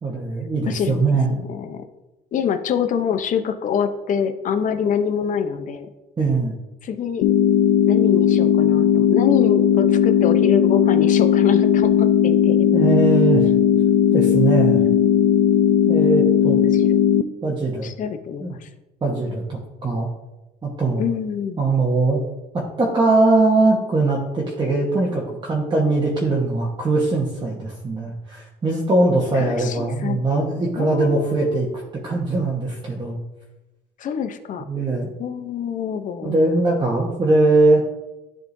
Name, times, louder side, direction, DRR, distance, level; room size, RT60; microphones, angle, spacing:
voice 1, 0.0-1.3 6.2-6.5 12.7-13.5 14.1-14.8 15.9-16.6 17.4-17.9 18.4-18.5 19.0-20.1 20.6-21.0 21.6-22.2 22.8-31.7 32.0-33.2 34.7-35.1 36.2-37.8, right 3 dB, 25° right, -3 dB, 1.1 m, -20 dB
voice 2, 0.7-1.1 1.4-1.8 2.3-5.9 6.8-7.3 7.9-12.6 14.8-15.1 16.6-17.0 17.8-18.7 21.0-21.6 29.3-30.2 30.8-31.6 34.0-34.7 35.2-36.4, left 7 dB, 50° left, 8 dB, 0.7 m, -25 dB
sound 1, 7.2-17.2, left 9 dB, 85° left, 0.4 m, -17 dB
11.0 x 3.7 x 2.6 m, 1.0 s
cardioid pair, 110°, 17 cm